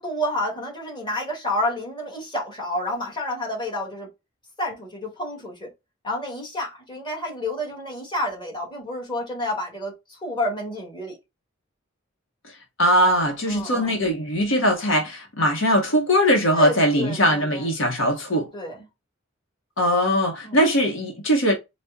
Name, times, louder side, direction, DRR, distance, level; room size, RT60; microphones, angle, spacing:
voice 1, 0.0-4.1 4.6-5.7 6.0-11.2 13.4-14.0 16.5-17.7 18.5-18.9 20.4-20.6, left 1 dB, 25° left, 1.4 m, -30 dB
voice 2, 12.8-18.5 19.8-21.5, equal, 70° left, 0.9 m, -20 dB
4.1 x 2.1 x 3.5 m
head